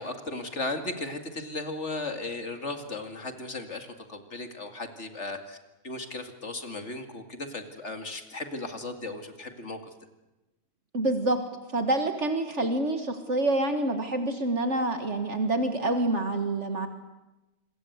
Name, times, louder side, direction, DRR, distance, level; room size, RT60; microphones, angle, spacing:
voice 1, 0.0-5.6 5.8-9.8, left 2 dB, 55° left, 6 dB, 2.5 m, -36 dB
voice 2, 10.9-11.4 11.7-16.9, right 2 dB, 60° right, 6 dB, 2.0 m, -27 dB
27.0 x 23.0 x 8.1 m, 1.0 s
omnidirectional pair, 1.4 m